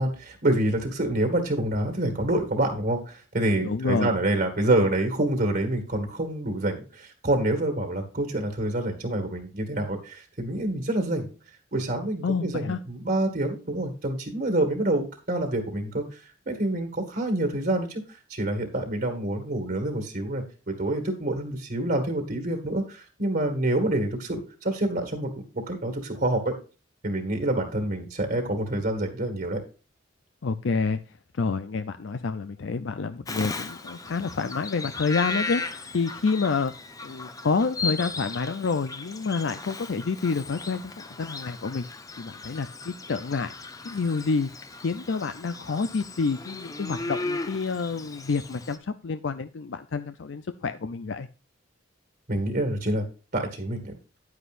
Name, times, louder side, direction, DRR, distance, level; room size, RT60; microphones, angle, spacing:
voice 1, 0.0-11.3 11.7-18.0 18.3-26.5 27.0-29.6 52.3-53.0 53.3-53.9, right 1 dB, 50° right, 5 dB, 2.0 m, -27 dB
voice 2, 3.6-4.1 12.2-12.8 30.4-31.0 31.3-35.6 35.9-36.7 37.0-41.9 42.2-43.5 43.8-44.5 44.8-51.3, left 4 dB, 65° left, 10 dB, 0.5 m, -28 dB
Bird vocalization bird call bird song, 33.3-48.8, left 3 dB, 20° left, 0.8 m, -36 dB
10.0 x 9.6 x 2.5 m, 0.34 s
head